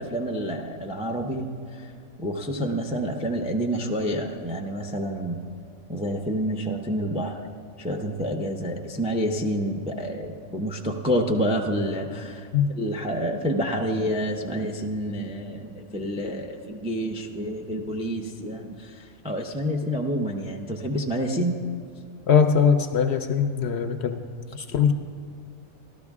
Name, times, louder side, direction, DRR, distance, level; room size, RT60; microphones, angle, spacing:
voice 1, 0.0-1.9 2.2-5.4 5.9-7.4 7.8-12.5 12.8-21.6, equal, 10° right, 2 dB, 0.3 m, -28 dB
voice 2, 22.3-24.9, left 7 dB, 65° left, 7 dB, 0.7 m, -21 dB
13.5 x 12.5 x 3.5 m, 2.3 s
omnidirectional pair, 1.4 m